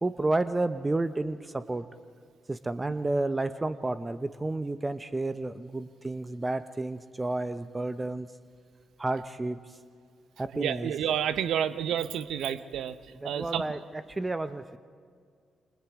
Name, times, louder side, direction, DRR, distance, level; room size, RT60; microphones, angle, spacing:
voice 1, 0.0-1.9 2.5-8.3 9.0-9.6 10.4-10.9 13.1-14.8, right 2 dB, 25° right, 11 dB, 0.9 m, -31 dB
voice 2, 10.5-12.9 13.2-13.6, right 9 dB, 65° right, 13 dB, 0.9 m, -29 dB
28.5 x 26.5 x 3.7 m, 2.1 s
hypercardioid pair, 40°, 0 cm